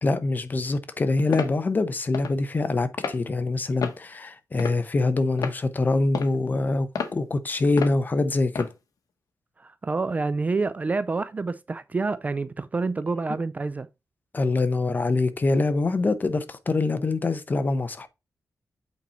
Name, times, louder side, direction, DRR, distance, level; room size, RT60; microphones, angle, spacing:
voice 1, 0.0-8.7 14.3-18.1, left 3 dB, 30° left, 0.8 m, -24 dB
sound 1, 1.3-1.5 2.1-2.3 3.0-3.2 3.8-4.0 4.6-4.9 5.4-5.6 6.1-6.4 6.9-7.1 7.8-8.0 8.5-8.7, left 6 dB, 75° left, 1.1 m, -30 dB
voice 2, 9.6-13.9, right 3 dB, 25° right, 0.3 m, -28 dB
8.2 x 4.2 x 4.3 m
wide cardioid pair, 160°, 6 cm